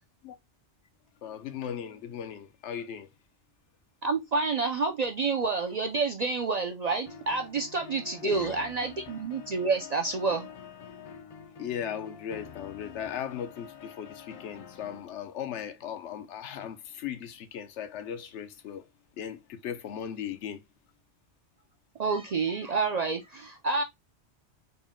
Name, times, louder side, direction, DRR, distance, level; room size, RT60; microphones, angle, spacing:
voice 1, 1.2-3.1 8.2-8.6 11.6-18.9 19.2-20.6, left 9 dB, 85° left, 0.9 m, -37 dB
voice 2, 4.0-10.5 22.0-23.8, right 4 dB, 60° right, 0.4 m, -29 dB
sound 1, 7.1-15.1, left 7 dB, 55° left, 0.3 m, -47 dB
3.9 x 2.1 x 3.6 m
omnidirectional pair, 1.2 m